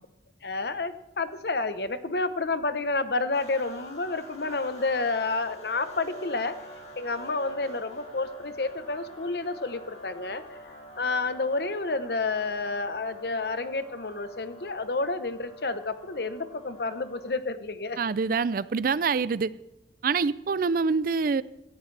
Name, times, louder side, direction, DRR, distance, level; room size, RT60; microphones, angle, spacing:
voice 1, 0.4-6.6 7.0-10.6 11.0-18.0, left 3 dB, 60° left, 11 dB, 0.9 m, -30 dB
sound 1, 3.3-17.5, equal, 35° left, 2.3 m, -46 dB
voice 2, 18.0-19.5 20.0-21.4, right 5 dB, 50° right, 18 dB, 0.4 m, -25 dB
17.5 x 15.0 x 3.3 m, 0.96 s
head